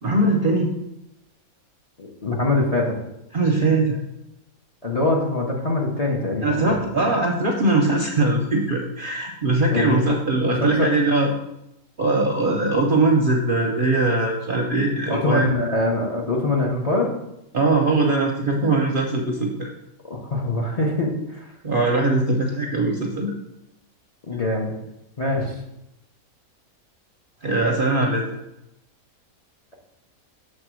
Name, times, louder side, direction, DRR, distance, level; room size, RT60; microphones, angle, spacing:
voice 1, 0.0-0.7 3.3-4.0 6.4-11.3 12.0-15.5 17.5-19.7 21.6-23.3 27.4-28.3, right 2 dB, 50° right, 1 dB, 0.6 m, -21 dB
voice 2, 2.0-3.0 4.8-7.1 9.7-10.1 10.4-10.9 15.1-17.1 20.1-21.5 24.3-24.7 25.2-25.6, left 2 dB, 35° left, -1 dB, 0.7 m, -24 dB
6.3 x 3.6 x 6.1 m, 0.87 s
omnidirectional pair, 1.6 m